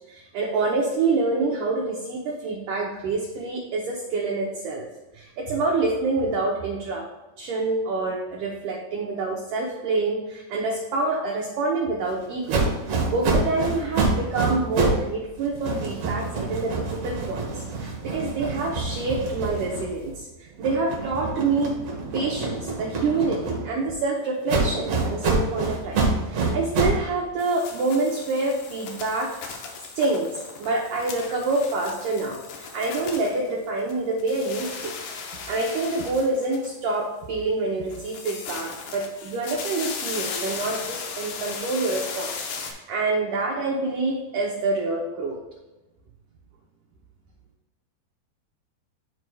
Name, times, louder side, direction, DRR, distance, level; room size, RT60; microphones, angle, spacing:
voice 1, 0.1-4.9 5.1-7.1 7.4-12.6 12.9-21.7 22.1-29.3 30.0-34.9 35.5-45.4, right 3 dB, 90° right, -1 dB, 1.8 m, -27 dB
sound 1, 12.5-15.1 15.4-20.2 20.6-23.9 24.5-27.1, right 3 dB, 65° right, 1.6 m, -26 dB
sound 2, 27.4-33.9 34.2-37.0 37.9-42.7, left 5 dB, 75° left, 2.0 m, -36 dB
12.0 x 4.6 x 2.2 m, 1.0 s
omnidirectional pair, 4.8 m